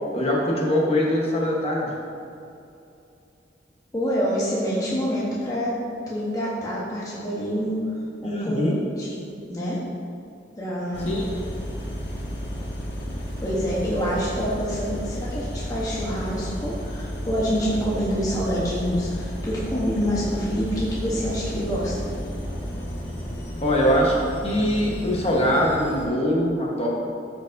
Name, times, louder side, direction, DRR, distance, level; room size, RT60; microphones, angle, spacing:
voice 1, 0.1-1.9 8.3-8.7 11.0-11.3 23.6-26.9, equal, 35° left, -3 dB, 1.2 m, -22 dB
voice 2, 3.9-7.9 8.2-9.8 10.6-11.1 13.4-22.1, equal, 20° left, -7 dB, 1.0 m, -27 dB
sound 1, 10.9-26.1, equal, 90° left, 1.7 m, -32 dB
12.5 x 5.0 x 2.6 m, 2.6 s
head